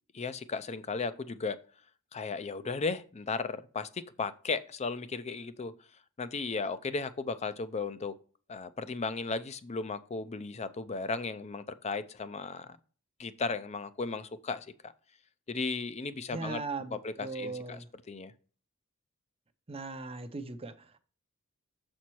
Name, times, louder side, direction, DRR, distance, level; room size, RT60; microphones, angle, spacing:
voice 1, 0.1-1.6 2.1-5.7 6.2-8.1 8.5-12.8 13.2-14.9 15.5-16.6 16.9-17.8 18.1-18.3, left 4 dB, 30° left, 0.5 m, -35 dB
voice 2, 16.3-17.9 19.7-21.0, right 3 dB, 25° right, 0.6 m, -39 dB
7.2 x 4.4 x 4.6 m
head